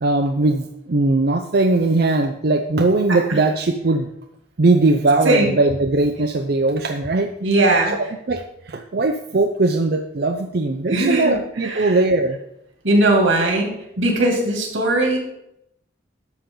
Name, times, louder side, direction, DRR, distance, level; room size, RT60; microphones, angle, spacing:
voice 1, 0.0-4.1 4.6-7.3 7.9-12.4, right 2 dB, 50° right, 5 dB, 0.5 m, -19 dB
voice 2, 7.4-8.0 10.9-11.3 11.6-12.0 12.8-15.2, right 2 dB, 80° right, 1 dB, 2.5 m, -19 dB
11.5 x 7.1 x 3.8 m, 0.81 s
head